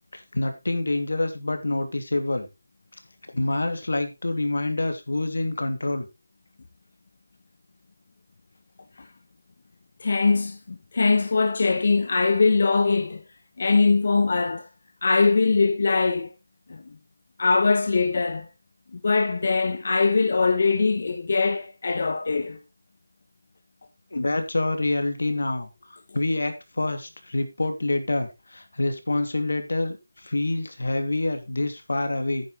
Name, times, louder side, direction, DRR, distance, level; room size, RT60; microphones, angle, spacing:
voice 1, 0.1-2.5 3.3-6.1 24.1-32.5, left 2 dB, 75° left, 2.7 m, -27 dB
voice 2, 10.0-13.2 13.6-14.7 15.0-16.3 16.7-16.8 17.4-18.5 18.9-22.6, left 4 dB, 40° left, 1.0 m, -22 dB
11.0 x 9.5 x 3.3 m
figure-of-eight pair, 175°, 0 cm